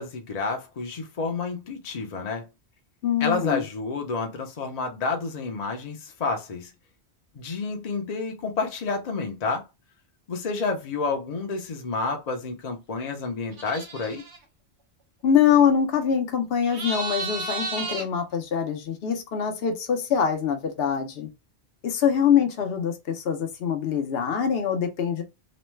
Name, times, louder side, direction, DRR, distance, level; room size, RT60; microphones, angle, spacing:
voice 1, 0.0-2.5 3.2-6.7 7.3-9.7 10.3-14.2, left 4 dB, 45° left, 0.6 m, -29 dB
voice 2, 3.0-3.6 15.2-21.3 21.8-25.2, left 8 dB, 70° left, 0.9 m, -24 dB
sound 1, 13.5-14.4 16.6-18.1, right 3 dB, 75° right, 1.0 m, -32 dB
3.0 x 2.1 x 3.1 m
omnidirectional pair, 1.1 m